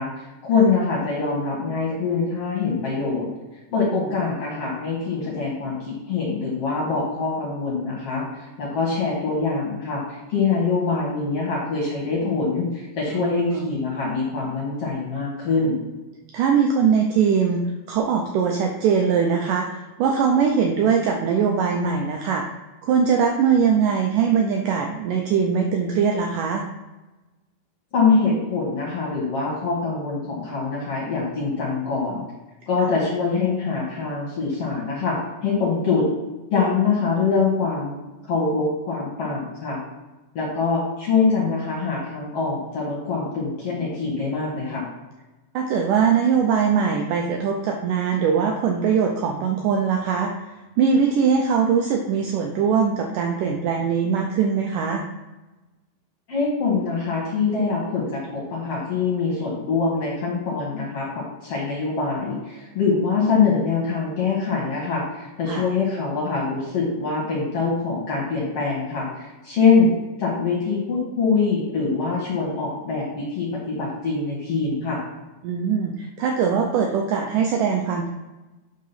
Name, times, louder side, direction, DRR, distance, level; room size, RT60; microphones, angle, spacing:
voice 1, 0.0-3.3 3.7-15.8 27.9-32.2 32.7-36.1 36.5-37.9 38.3-39.8 40.4-44.8 56.3-69.9 70.2-75.0, left 4 dB, 55° left, -4 dB, 1.9 m, -24 dB
voice 2, 13.1-13.7 16.3-17.6 17.9-22.4 22.8-26.6 45.5-50.3 50.8-55.0 65.5-65.6 75.4-78.1, right 6 dB, 80° right, 2 dB, 1.9 m, -21 dB
8.5 x 3.7 x 5.7 m, 1.1 s
omnidirectional pair, 4.4 m